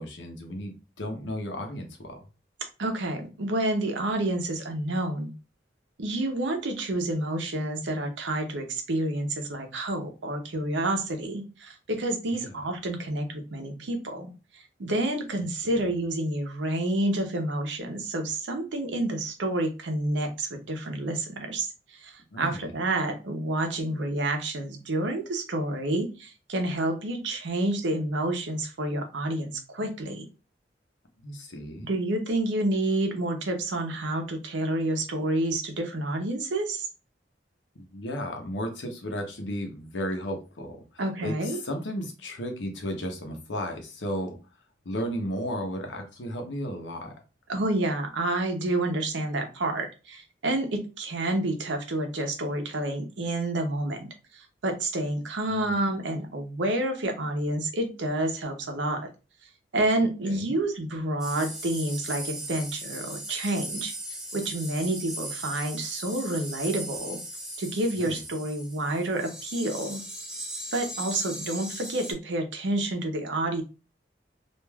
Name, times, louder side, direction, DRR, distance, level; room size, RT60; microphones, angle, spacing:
voice 1, 0.0-2.2 12.3-12.6 15.7-15.9 22.3-22.7 31.2-31.9 37.7-44.4 44.8-47.2 55.5-55.9 60.2-60.6 68.0-68.2, equal, 85° left, 4 dB, 0.8 m, -34 dB
voice 2, 2.8-5.3 6.0-30.2 31.8-36.9 41.0-41.6 47.5-59.1 59.7-63.9 64.3-67.2 67.6-70.0 70.7-73.6, right 1 dB, 85° right, 5 dB, 0.7 m, -29 dB
sound 1, 61.2-72.1, right 1 dB, 5° right, 0.6 m, -38 dB
3.2 x 2.5 x 2.2 m, 0.32 s
head